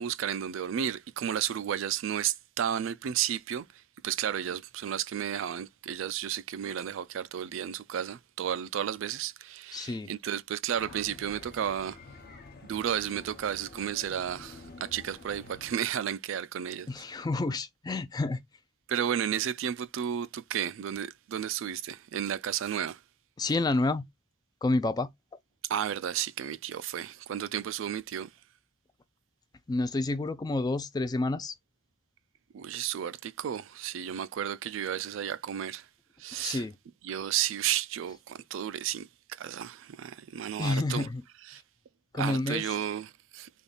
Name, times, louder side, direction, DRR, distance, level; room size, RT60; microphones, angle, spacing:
voice 1, 0.0-3.7 4.0-12.0 12.6-16.9 18.9-23.0 25.7-28.3 32.5-35.9 36.2-36.6 37.0-41.1 41.5-41.6 42.1-43.5, right 9 dB, 65° right, 0.3 m, -33 dB
voice 2, 9.7-10.1 16.9-18.4 23.4-24.0 24.6-25.1 29.7-31.6 36.4-36.8 40.6-41.2 42.1-42.7, left 2 dB, 20° left, 0.3 m, -29 dB
sound 1, 10.7-15.7, left 3 dB, 50° left, 0.8 m, -49 dB
3.5 x 2.4 x 3.8 m
head